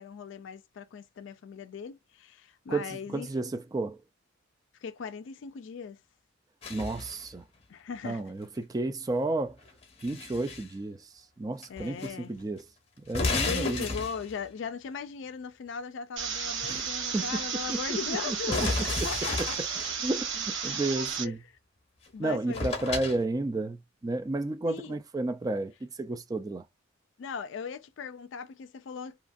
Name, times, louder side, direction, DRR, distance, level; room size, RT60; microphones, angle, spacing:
voice 1, 0.0-3.3 4.8-6.0 7.7-8.2 11.7-12.3 13.5-19.6 20.7-21.3 22.1-22.7 23.0-23.1 24.7-25.0 27.2-29.2, left 6 dB, 60° left, 0.3 m, -38 dB
voice 2, 2.7-4.0 6.7-7.4 8.0-9.6 10.0-12.7 13.1-13.9 16.6-16.9 17.1-17.4 17.7-18.7 19.0-19.1 19.4-19.7 20.0-21.4 22.2-26.7, right 2 dB, 20° right, 0.3 m, -32 dB
sound 1, 6.6-7.3 9.6-10.7 11.6-12.1 12.4-12.5 13.1-14.5 18.5-19.9 22.1-22.2 22.5-23.2, left 3 dB, 30° left, 0.8 m, -32 dB
sound 2, 16.2-21.2, right 6 dB, 60° right, 1.0 m, -33 dB
2.9 x 2.5 x 2.4 m
head